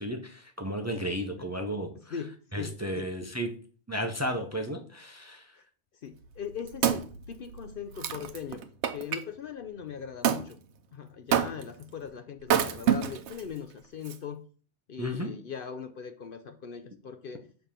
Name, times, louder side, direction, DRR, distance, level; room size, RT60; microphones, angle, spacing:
voice 1, 0.0-1.9 2.5-3.5 3.9-5.5 15.0-15.3, equal, 15° right, 5 dB, 0.6 m, -33 dB
voice 2, 1.9-3.1 5.6-5.7 6.0-8.6 8.9-10.6 10.9-14.5 14.9-17.4, left 7 dB, 60° left, 8 dB, 0.7 m, -40 dB
Wood, 6.2-9.2 10.2-10.5 11.3-11.8 12.4-13.4 14.1-14.2, right 8 dB, 75° right, 0.9 m, -28 dB
7.1 x 3.4 x 5.7 m, 0.42 s
omnidirectional pair, 1.2 m